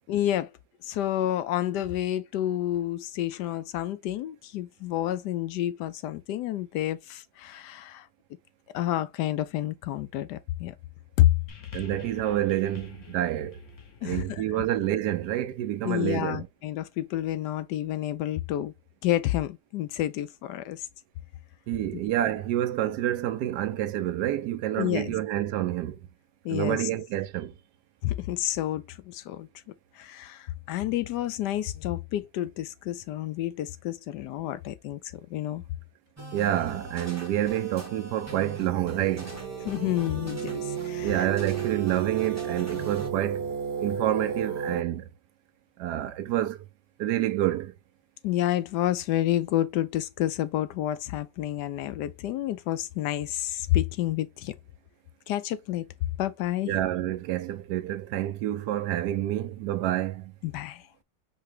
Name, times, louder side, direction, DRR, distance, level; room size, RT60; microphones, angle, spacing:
voice 1, 0.1-0.5 0.8-8.1 8.7-10.7 11.2-11.3 14.0-14.6 15.8-18.7 19.0-20.8 21.9-22.0 24.8-25.1 26.4-26.8 28.0-29.5 30.0-35.0 35.3-35.6 39.6-41.2 48.2-54.5 55.3-55.9 56.2-56.7 60.4-60.8, left 13 dB, 80° left, 1.2 m, -29 dB
sound 1, 11.5-16.0 16.9-17.0, left 7 dB, 50° left, 1.2 m, -47 dB
voice 2, 11.7-13.6 14.0-16.5 21.7-26.0 26.5-27.5 36.3-39.4 41.0-43.5 43.8-45.1 45.8-46.6 47.0-47.7 56.6-60.3, right 13 dB, 80° right, 1.2 m, -28 dB
sound 2, 36.2-43.1, right 1 dB, 15° right, 0.7 m, -42 dB
sound 3, 38.7-44.8, right 7 dB, 45° right, 0.9 m, -33 dB
4.8 x 2.2 x 4.8 m
omnidirectional pair, 1.8 m